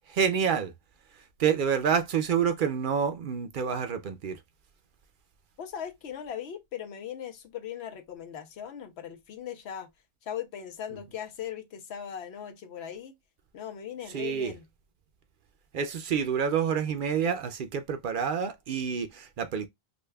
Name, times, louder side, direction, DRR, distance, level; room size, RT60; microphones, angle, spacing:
voice 1, 0.1-0.7 1.4-4.4 14.1-14.5 15.7-19.7, right 7 dB, 60° right, 0.6 m, -28 dB
voice 2, 5.6-9.9 10.2-13.2 13.5-14.6, left 9 dB, 85° left, 0.9 m, -39 dB
5.0 x 2.2 x 2.2 m
omnidirectional pair, 1.1 m